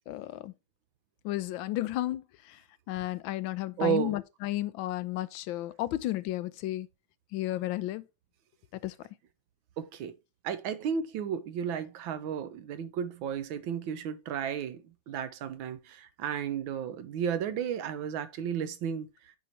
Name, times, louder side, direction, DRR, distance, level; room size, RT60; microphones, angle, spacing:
voice 1, 0.1-0.5 1.2-2.6 2.9-6.9 7.3-8.0 8.8-8.9, left 15 dB, 80° left, 1.3 m, -33 dB
voice 2, 3.8-4.2 9.8-10.1 10.4-14.8 15.1-19.1, right 8 dB, 80° right, 1.5 m, -33 dB
8.0 x 4.7 x 2.8 m
omnidirectional pair, 2.2 m